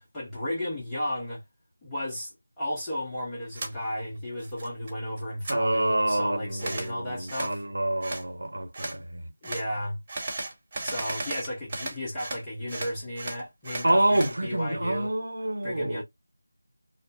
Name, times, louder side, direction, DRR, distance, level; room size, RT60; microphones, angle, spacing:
voice 1, 0.0-1.4 1.8-7.6 9.4-10.0 10.8-15.1 15.6-16.0, equal, 10° left, 0.9 m, -34 dB
sound 1, 3.5-3.7 4.2-4.9 5.2-5.6 6.6-6.9 7.3-7.6 8.0-8.2 8.7-9.0 9.4-9.7 10.1-12.4 12.7-14.4, right 2 dB, 25° right, 1.1 m, -35 dB
voice 2, 5.5-9.3 13.8-16.0, right 1 dB, 70° right, 1.0 m, -27 dB
5.2 x 2.1 x 2.3 m
figure-of-eight pair, 170°, 0 cm